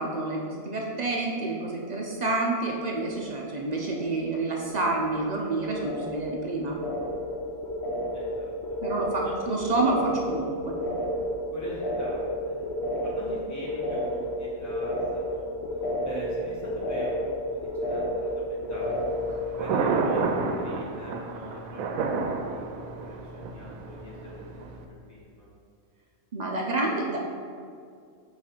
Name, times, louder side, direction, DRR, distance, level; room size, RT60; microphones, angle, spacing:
voice 1, 0.0-6.8 8.8-10.7 26.3-27.2, right 2 dB, 55° right, -1 dB, 0.4 m, -28 dB
sound 1, 1.8-2.3 2.6-3.4 3.6-19.4, equal, 60° left, 0.9 m, -32 dB
voice 2, 8.1-8.5 9.2-9.3 11.5-15.5 16.0-21.9 22.4-24.6 25.1-25.5, equal, 15° left, -7 dB, 1.3 m, -43 dB
Thunder, 18.8-24.8, right 4 dB, 85° right, 1.0 m, -30 dB
7.2 x 3.2 x 4.4 m, 2.3 s
omnidirectional pair, 1.4 m